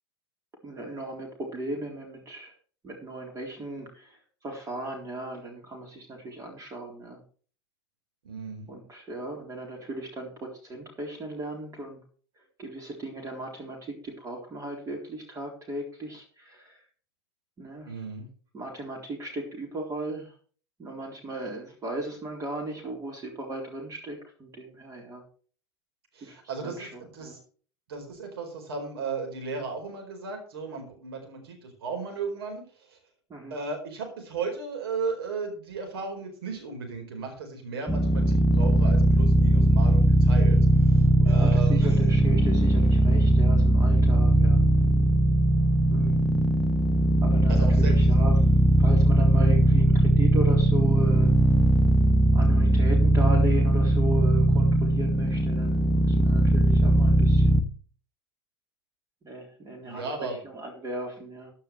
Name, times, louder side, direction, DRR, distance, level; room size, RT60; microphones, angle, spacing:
voice 1, 0.6-2.5 2.8-7.2 8.7-12.0 12.6-16.8 17.6-18.0 18.5-20.3 20.8-25.2 26.2-27.3 33.3-33.6 41.2-44.6 45.9-46.2 47.2-48.4 48.8-51.4 52.3-57.6 59.2-61.5, right 1 dB, 25° right, 2 dB, 3.8 m, -37 dB
voice 2, 8.2-8.6 17.8-18.3 26.1-27.4 27.9-33.0 33.5-42.0 47.5-47.9 59.8-60.4, right 4 dB, 65° right, 3 dB, 4.5 m, -35 dB
sound 1, 37.9-57.6, right 1 dB, 5° left, 1.1 m, -20 dB
15.0 x 10.0 x 3.3 m, 0.42 s
figure-of-eight pair, 85°, 14 cm